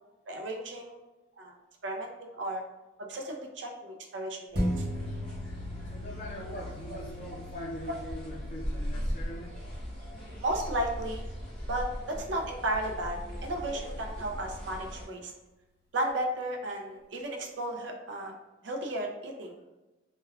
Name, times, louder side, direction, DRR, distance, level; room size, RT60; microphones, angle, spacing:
voice 1, 0.3-1.0 1.4-1.5 1.8-2.6 3.0-4.9 7.9-8.0 10.4-11.2 11.7-15.3 15.9-18.3 18.6-19.6, right 1 dB, 75° right, 2 dB, 0.5 m, -34 dB
sound 1, 4.5-13.4 13.8-13.9, equal, 55° right, 0.9 m, -39 dB
sound 2, 4.6-15.0, equal, 5° left, 0.9 m, -39 dB
voice 2, 5.8-9.6, equal, 45° left, -4 dB, 0.4 m, -42 dB
3.3 x 2.2 x 2.3 m, 1.1 s
head